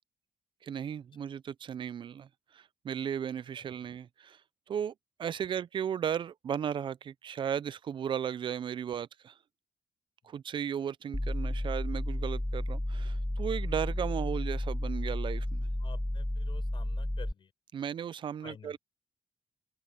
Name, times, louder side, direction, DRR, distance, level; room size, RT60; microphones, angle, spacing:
voice 1, 0.6-2.3 2.5-4.4 4.7-4.9 5.2-9.3 10.2-15.7 17.7-18.8, right 8 dB, 55° right, 0.5 m, -35 dB
sound 1, 11.1-17.3, left 1 dB, 5° left, 1.1 m, -32 dB
voice 2, 15.8-17.5 18.4-18.7, left 7 dB, 60° left, 6.8 m, -50 dB
cardioid pair, 90°, 10 cm